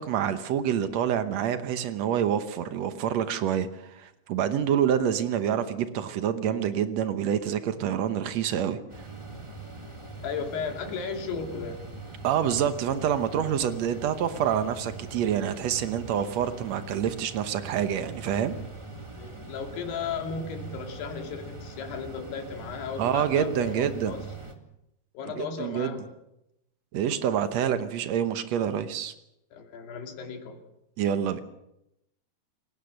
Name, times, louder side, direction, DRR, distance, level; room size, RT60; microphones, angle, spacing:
voice 1, 0.0-9.1 12.2-18.5 23.0-24.1 25.4-25.9 26.9-29.1 31.0-31.4, right 9 dB, 80° right, 10 dB, 1.5 m, -27 dB
sound 1, 8.9-24.5, right 3 dB, 35° right, 0.5 m, -42 dB
voice 2, 10.2-11.9 19.2-24.2 25.1-26.1 29.5-30.6, left 5 dB, 85° left, 4 dB, 4.5 m, -35 dB
28.0 x 16.5 x 6.6 m, 0.85 s
omnidirectional pair, 4.6 m